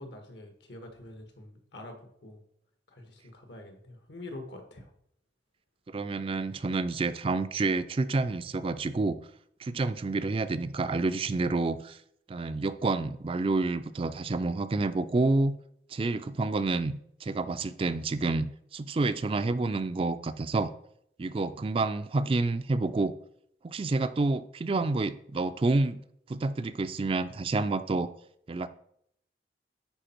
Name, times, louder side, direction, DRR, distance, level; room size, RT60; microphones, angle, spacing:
voice 1, 0.0-2.4 2.9-4.9, left 1 dB, 75° left, 5 dB, 1.6 m, -46 dB
voice 2, 5.9-9.2 9.6-12.0 12.3-15.6 15.9-20.7 21.2-23.1 23.6-26.0 26.3-28.1 28.5-28.7, right 3 dB, 30° right, 12 dB, 0.4 m, -29 dB
10.0 x 4.5 x 4.5 m, 0.70 s
head